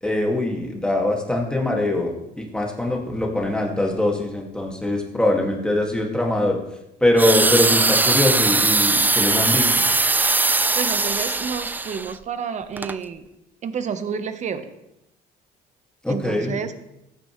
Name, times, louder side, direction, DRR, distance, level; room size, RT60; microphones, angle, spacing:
voice 1, 0.0-6.6 7.0-9.8 16.0-16.5, left 1 dB, 5° left, 0 dB, 2.0 m, -22 dB
sound 1, 7.2-12.1 12.8-12.9, right 3 dB, 10° right, 0.3 m, -20 dB
voice 2, 10.8-13.2 13.6-14.7 16.1-16.7, right 6 dB, 45° right, 10 dB, 1.0 m, -29 dB
15.0 x 9.1 x 3.1 m, 0.87 s
cardioid pair, 110°, 17 cm